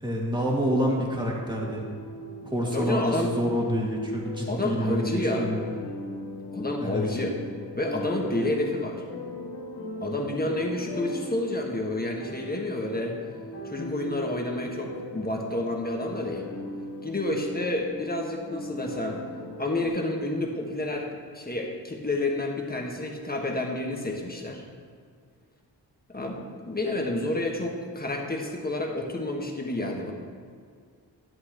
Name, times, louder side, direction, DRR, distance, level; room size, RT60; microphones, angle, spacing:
voice 1, 0.0-1.8 2.4-5.7 6.8-7.0, equal, 10° right, -2 dB, 2.1 m, -28 dB
sound 1, 0.5-19.9, left 1 dB, 75° left, 2.4 m, -39 dB
voice 2, 2.7-3.3 4.5-5.6 6.5-7.4 7.7-9.0 10.0-13.2 13.6-16.5 17.0-19.2 19.6-21.1 21.3-24.6 26.1-30.1, left 1 dB, 20° left, 0 dB, 1.5 m, -29 dB
11.0 x 7.6 x 3.0 m, 2.1 s
cardioid pair, 55°, 41 cm